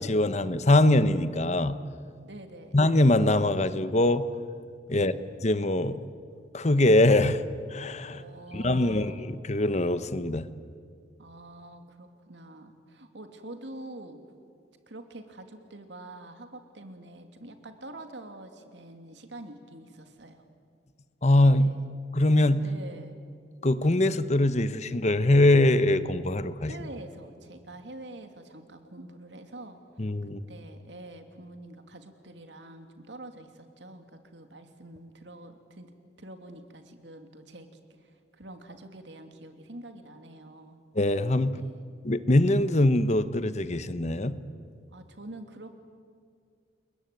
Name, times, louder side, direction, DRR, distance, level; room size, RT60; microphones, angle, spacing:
voice 1, 0.0-1.8 2.7-4.3 4.9-5.1 5.4-6.1 6.5-7.4 7.7-8.2 8.5-10.5 21.2-21.7 22.1-22.6 23.6-26.7 30.0-30.4 40.9-41.6 42.0-44.3, left 1 dB, 40° left, 13 dB, 1.1 m, -23 dB
voice 2, 2.2-2.8 4.9-5.2 8.1-9.3 11.2-14.2 14.9-20.4 21.5-21.8 22.6-23.2 26.7-29.8 30.2-35.9 36.2-40.8 41.5-41.8 44.9-45.7, right 1 dB, 75° right, 6 dB, 2.8 m, -46 dB
30.0 x 21.5 x 9.2 m, 2.2 s
head